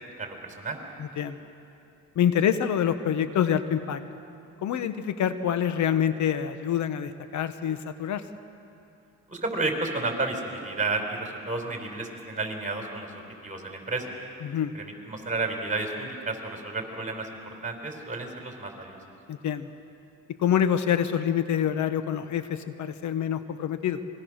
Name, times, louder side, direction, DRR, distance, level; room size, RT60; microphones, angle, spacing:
voice 1, 0.2-0.8 9.3-14.2 14.7-19.0, right 3 dB, 25° right, 3 dB, 4.6 m, -32 dB
voice 2, 1.0-1.4 2.2-4.0 4.6-8.2 14.4-14.7 19.3-19.7 20.4-24.0, left 9 dB, 70° left, 10 dB, 1.2 m, -26 dB
27.0 x 22.0 x 6.5 m, 2.7 s
cardioid pair, 90°, 30 cm